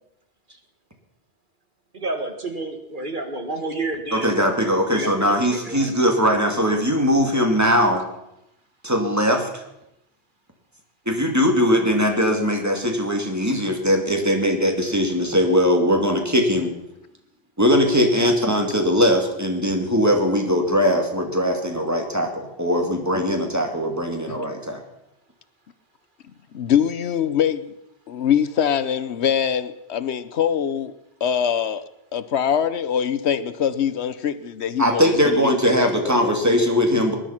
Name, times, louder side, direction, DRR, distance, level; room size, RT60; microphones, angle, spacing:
voice 1, 1.9-4.4 4.9-5.9, right 2 dB, 45° right, 1.9 m, -30 dB
voice 2, 4.1-8.0 8.8-9.6 11.1-16.7 17.6-24.8 34.8-37.1, equal, 15° right, 2.5 m, -20 dB
voice 3, 26.5-27.7 28.1-30.9 31.2-31.8 32.1-36.3, left 8 dB, 75° left, 1.1 m, -23 dB
20.0 x 11.5 x 5.8 m
omnidirectional pair, 1.1 m